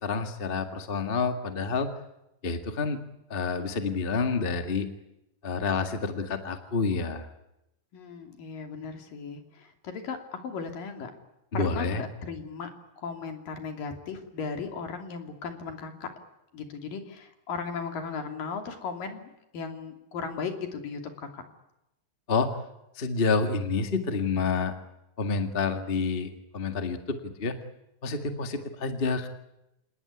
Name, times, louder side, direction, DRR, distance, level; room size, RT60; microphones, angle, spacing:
voice 1, 0.0-1.9 2.4-3.0 3.3-4.9 5.4-7.3 11.5-12.0 22.3-22.5 22.9-24.7 25.2-27.6 28.0-29.3, left 4 dB, 40° left, 7 dB, 0.7 m, -28 dB
voice 2, 7.9-11.1 11.5-12.7 13.0-16.1 16.5-21.4, left 5 dB, 60° left, 5 dB, 4.4 m, -37 dB
27.5 x 19.5 x 9.8 m, 0.89 s
omnidirectional pair, 4.7 m